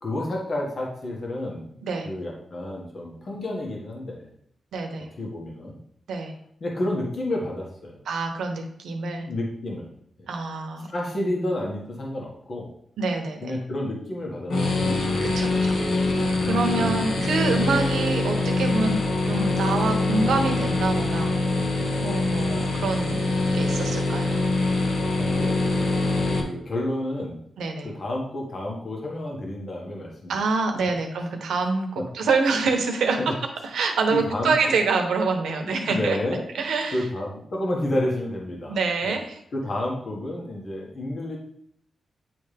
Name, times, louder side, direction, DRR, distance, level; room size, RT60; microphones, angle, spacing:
voice 1, 0.0-1.8 2.0-4.3 5.2-5.8 6.6-8.0 9.2-9.9 10.2-10.3 10.8-12.7 13.4-14.8 15.7-15.9 16.5-16.8 25.2-27.4 27.8-30.4 30.8-30.9 31.9-32.1 33.2-33.3 34.1-34.8 35.4-36.4 36.9-38.8 39.0-39.1 39.5-41.4, left 1 dB, 55° left, -1 dB, 1.6 m, -30 dB
voice 2, 4.7-5.1 6.1-6.3 8.1-9.3 10.3-10.9 13.0-13.6 15.2-15.8 16.5-21.4 22.0-23.3 23.5-24.3 27.6-27.9 30.3-31.9 32.1-33.3 33.7-36.2 36.6-37.0 38.7-39.4, right 4 dB, 90° right, 4 dB, 1.0 m, -26 dB
sound 1, 14.5-26.4, left 2 dB, 75° left, 1.1 m, -24 dB
9.3 x 3.4 x 3.4 m, 0.69 s
cardioid pair, 70°, 0 cm